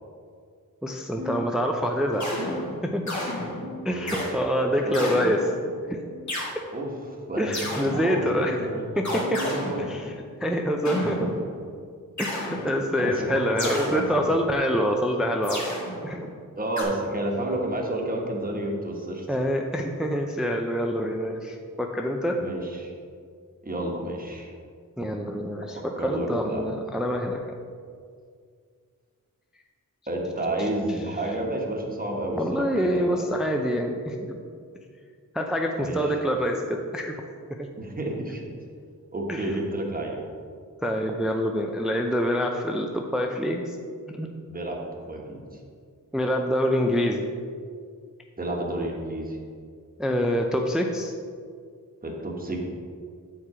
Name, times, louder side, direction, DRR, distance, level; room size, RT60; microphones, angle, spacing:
voice 1, 0.8-2.5 2.8-3.1 3.8-5.5 5.9-6.0 7.4-8.6 9.0-9.4 9.8-10.1 10.4-11.3 12.2-15.8 16.0-16.3 19.3-22.4 25.0-27.4 30.6-30.7 32.3-34.4 35.3-37.2 37.5-37.7 39.3-39.5 40.8-43.8 44.1-44.3 46.1-47.2 50.0-51.1, equal, ahead, 2 dB, 0.4 m, -26 dB
sound 1, 1.2-2.0 2.4-3.2 3.6-4.2 4.8-5.4 6.1-6.4 7.3-7.5 8.5-8.7 9.7-9.9 10.9-11.1 12.2-12.3 13.4-13.6 14.6-14.7 15.8-15.9, left 2 dB, 65° right, 0.9 m, -43 dB
sound 2, 2.1-4.3 4.9-5.8 6.3-6.5 7.5-8.3 9.0-10.2 10.8-11.7 12.2-13.1 13.6-14.5 15.4-16.3 16.8-16.9, left 1 dB, 60° left, 1.8 m, -32 dB
voice 2, 3.9-4.4 4.8-5.2 6.7-7.6 7.8-9.8 13.0-14.0 16.6-19.3 22.4-22.9 23.6-24.5 26.0-26.8 30.1-33.2 35.8-36.2 37.8-38.5 39.1-40.2 44.5-44.8 45.1-45.6 48.4-49.4 52.0-52.6, right 1 dB, 25° right, 0 dB, 1.2 m, -31 dB
8.4 x 4.5 x 4.9 m, 2.1 s
wide cardioid pair, 120°, 33 cm